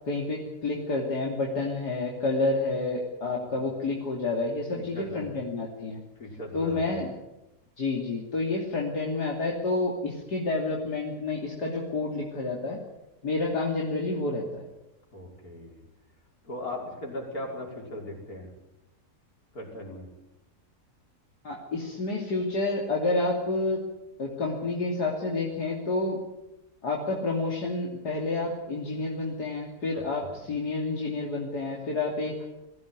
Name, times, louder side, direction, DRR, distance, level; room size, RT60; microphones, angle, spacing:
voice 1, 0.0-6.0 6.5-7.1 7.8-12.8 13.2-14.6 21.4-23.8 24.2-26.2 26.8-32.3, left 3 dB, 80° left, -2 dB, 3.5 m, -29 dB
voice 2, 4.7-5.4 6.2-7.0 15.1-15.8 16.4-18.5 19.5-20.1 29.9-30.3, left 1 dB, 65° left, -1 dB, 6.2 m, -38 dB
22.0 x 16.5 x 9.7 m, 0.93 s
omnidirectional pair, 1.7 m